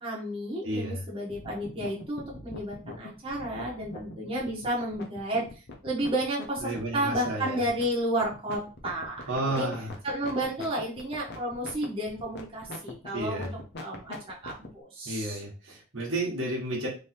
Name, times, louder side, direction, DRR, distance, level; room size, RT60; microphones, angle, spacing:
voice 1, 0.0-5.5 5.8-9.7 10.0-13.5 13.8-15.4, right 1 dB, 25° right, -4 dB, 1.2 m, -32 dB
voice 2, 0.6-1.0 6.6-7.6 9.3-9.9 13.1-13.5 15.0-16.9, right 1 dB, 60° right, -3 dB, 1.3 m, -32 dB
sound 1, 1.3-14.7, left 2 dB, 50° left, 0.9 m, -42 dB
3.5 x 3.0 x 4.3 m, 0.35 s
head